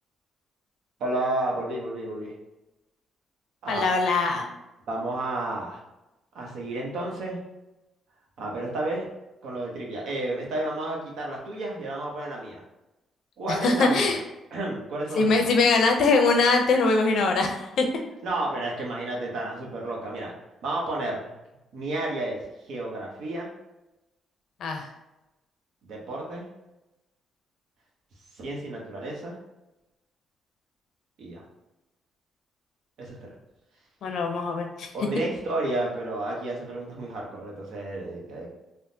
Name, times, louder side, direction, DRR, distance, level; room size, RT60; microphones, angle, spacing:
voice 1, 1.0-2.3 3.6-3.8 4.9-5.8 6.3-7.4 8.4-9.1 9.4-12.6 13.4-14.2 14.5-15.5 18.2-20.3 20.6-21.3 21.7-22.4 22.7-23.5 25.8-26.5 28.3-29.4 31.2-31.4 33.0-33.2 34.9-38.5, right 2 dB, 75° right, -2 dB, 0.8 m, -31 dB
voice 2, 3.7-4.5 13.5-14.2 15.1-17.9 24.6-24.9 34.0-34.9, left 3 dB, 70° left, 3 dB, 0.5 m, -22 dB
3.4 x 2.1 x 2.7 m, 0.96 s
cardioid pair, 90°, 0 cm